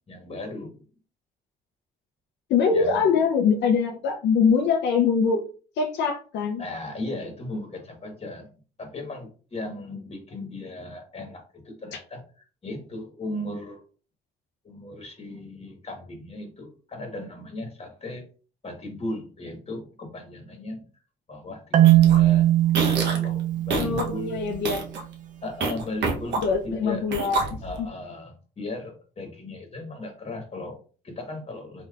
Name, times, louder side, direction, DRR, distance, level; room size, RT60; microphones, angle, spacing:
voice 1, 0.1-0.8 2.7-3.2 6.6-8.5 8.8-12.2 12.6-13.8 14.6-18.2 18.6-20.9 21.3-24.4 25.4-27.1 27.6-31.9, left 2 dB, 35° left, 3 dB, 1.3 m, -37 dB
voice 2, 2.5-5.5 5.8-6.6 23.8-24.9 26.4-27.9, left 5 dB, 75° left, 2 dB, 0.5 m, -23 dB
Marimba xylophone, 21.7-24.7, right 13 dB, 45° right, 0.4 m, -20 dB
sound 1, 21.8-22.2 22.7-23.2 23.7-24.0 24.5-25.0 25.6-26.7 27.1-27.8, right 3 dB, 75° right, 0.9 m, -27 dB
3.3 x 2.9 x 2.4 m, 0.38 s
cardioid pair, 75°, 18 cm